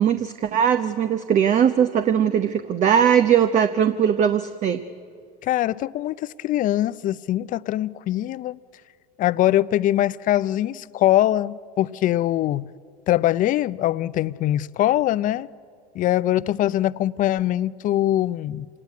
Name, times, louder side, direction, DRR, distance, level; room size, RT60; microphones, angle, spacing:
voice 1, 0.0-4.8, right 8 dB, 35° right, 0.9 m, -20 dB
voice 2, 5.4-8.6 9.2-12.7 13.1-15.5 15.9-18.7, left 13 dB, 40° left, 0.6 m, -22 dB
26.0 x 18.5 x 9.7 m
hypercardioid pair, 95°, 20 cm